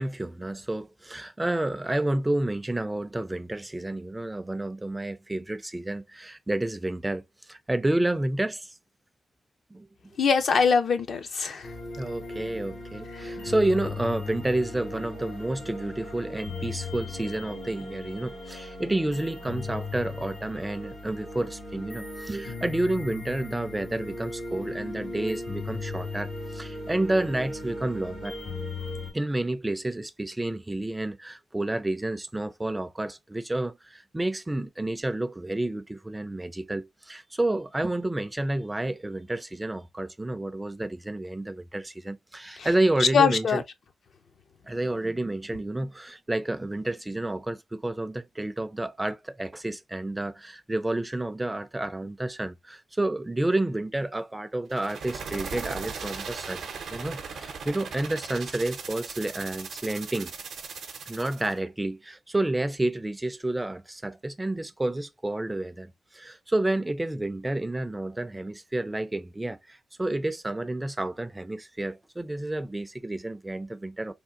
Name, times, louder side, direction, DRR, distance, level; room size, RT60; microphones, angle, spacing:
voice 1, 0.0-8.7 9.7-9.9 12.0-28.4 29.1-43.6 44.6-56.6 56.9-60.3 61.1-74.1, right 1 dB, 15° right, 0.4 m, -30 dB
voice 2, 10.2-11.7 42.6-42.7 43.1-43.6, left 6 dB, 65° left, 0.5 m, -22 dB
sound 1, 11.6-29.1, left 3 dB, 85° left, 2.0 m, -37 dB
sound 2, 54.7-61.5, right 5 dB, 80° right, 0.7 m, -38 dB
3.5 x 2.3 x 2.5 m
cardioid pair, 70°, 0 cm